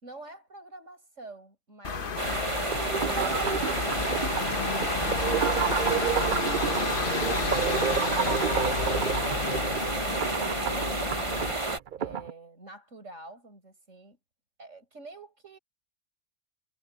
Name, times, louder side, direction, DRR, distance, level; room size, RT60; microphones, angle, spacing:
voice 1, 0.0-2.9 7.9-11.3 12.0-14.2 14.6-15.6, right 2 dB, 75° right, 6.6 m, -47 dB
sound 1, 1.8-11.5, left 5 dB, 45° left, 1.3 m, -32 dB
sound 2, 2.2-11.8, right 2 dB, 25° right, 1.6 m, -31 dB
sound 3, 2.7-12.3, right 8 dB, 50° right, 0.7 m, -31 dB
omnidirectional pair, 1.3 m